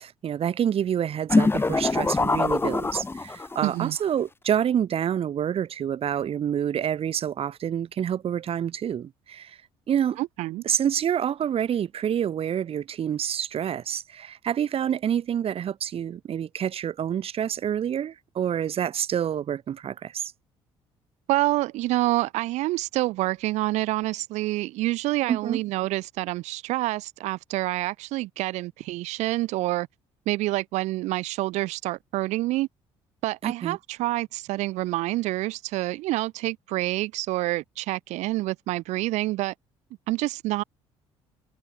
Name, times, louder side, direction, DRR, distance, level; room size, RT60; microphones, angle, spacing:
voice 1, 0.0-9.6 9.9-10.2 10.6-20.3 25.3-25.6 33.4-33.8, right 9 dB, 55° right, 3.5 m, -27 dB
sound 1, 1.3-3.7, left 3 dB, 20° left, 1.7 m, -23 dB
voice 2, 3.6-3.9 10.2-10.6 21.3-29.9 30.3-32.7 33.2-39.5 40.1-40.6, right 18 dB, 80° right, 1.8 m, -27 dB
supercardioid pair, 75°, 12 cm